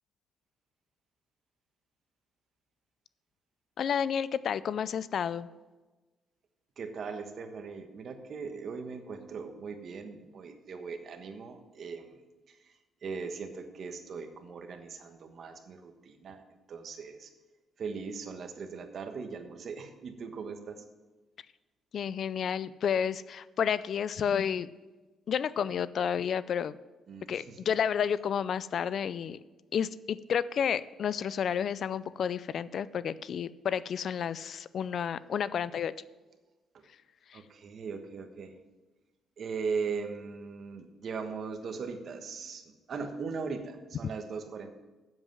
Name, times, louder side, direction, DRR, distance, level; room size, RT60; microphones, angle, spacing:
voice 1, 3.8-5.5 21.9-24.7 25.3-26.8 27.3-29.4 29.7-35.9 37.3-37.4, left 8 dB, 60° left, 17 dB, 0.4 m, -31 dB
voice 2, 6.8-12.1 13.0-16.4 16.7-17.3 17.8-20.8 27.1-27.6 37.3-38.5 39.4-44.7, right 5 dB, 55° right, 7 dB, 1.2 m, -39 dB
7.8 x 7.5 x 7.7 m, 1.2 s
cardioid pair, 90°, 0 cm